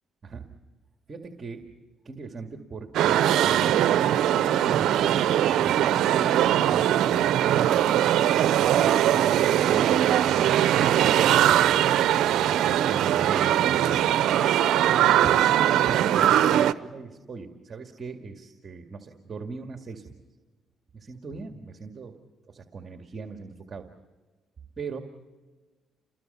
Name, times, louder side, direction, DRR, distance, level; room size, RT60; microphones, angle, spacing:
voice 1, 1.1-1.7 2.0-3.8 4.3-5.9 6.7-7.4 7.8-11.8 12.2-14.1 15.2-20.1 20.9-22.1 22.5-23.9 24.8-25.0, right 4 dB, 40° right, 4 dB, 2.1 m, -40 dB
sound 1, 2.9-16.7, right 11 dB, 80° right, 0.7 m, -21 dB
29.5 x 21.5 x 5.6 m, 1.3 s
cardioid pair, 90°, 0 cm